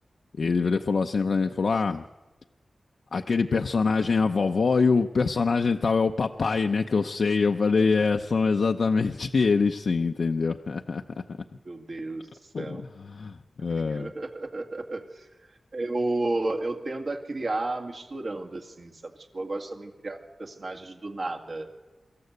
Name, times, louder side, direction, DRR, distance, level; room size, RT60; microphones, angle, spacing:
voice 1, 0.4-2.0 3.1-11.4 12.5-14.1, left 4 dB, 70° left, 5 dB, 0.6 m, -24 dB
voice 2, 11.6-12.9 13.8-15.3 15.7-21.7, right 2 dB, 60° right, 3 dB, 2.3 m, -32 dB
24.5 x 14.0 x 8.1 m, 1.2 s
wide cardioid pair, 95°, 0 cm